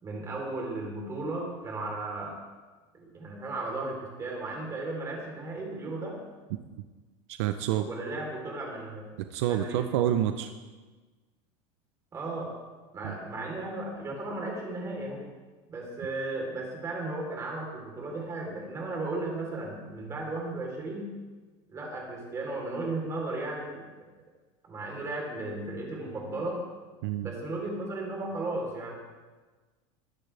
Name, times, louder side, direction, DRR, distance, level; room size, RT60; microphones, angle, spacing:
voice 1, 0.0-2.3 2.9-6.2 7.9-9.0 9.5-9.8 12.1-12.5 12.9-15.2 15.7-21.1 21.7-23.8 24.6-26.6 27.2-28.9, right 2 dB, 20° right, -1 dB, 3.8 m, -35 dB
voice 2, 7.3-7.9 9.3-10.5 13.0-13.1 27.0-27.3, right 12 dB, 70° right, 8 dB, 0.8 m, -28 dB
21.5 x 10.5 x 3.5 m, 1.3 s
supercardioid pair, 155°, 15 cm